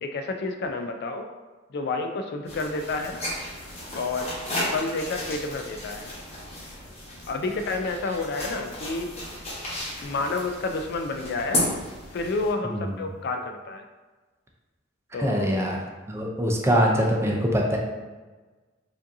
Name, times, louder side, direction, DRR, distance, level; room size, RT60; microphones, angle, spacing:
voice 1, 0.0-1.3 1.7-3.2 3.9-4.3 4.7-6.1 7.3-9.2 10.0-11.6 12.1-13.8 15.1-15.7, left 3 dB, 55° left, 5 dB, 0.3 m, -30 dB
sound 1, 2.4-12.5, left 1 dB, 30° left, 1.1 m, -34 dB
voice 2, 15.2-15.8 16.1-17.8, equal, 15° right, -1 dB, 0.5 m, -23 dB
5.0 x 2.7 x 2.6 m, 1.3 s
head